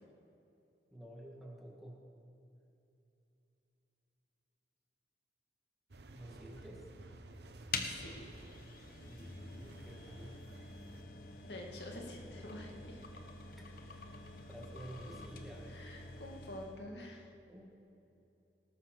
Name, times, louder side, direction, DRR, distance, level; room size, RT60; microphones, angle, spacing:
voice 1, 0.9-2.0 6.1-6.9 9.1-10.3 13.6-14.1 14.5-15.7 17.5-17.7, equal, ahead, -3 dB, 2.0 m, -51 dB
sound 1, 5.9-11.0, right 2 dB, 65° right, 0.9 m, -54 dB
sound 2, 7.7-16.8, left 3 dB, 55° left, 1.2 m, -47 dB
voice 2, 7.8-8.5 11.4-13.0 15.6-17.3, left 1 dB, 75° left, 0 dB, 2.0 m, -48 dB
19.0 x 7.5 x 6.1 m, 2.8 s
head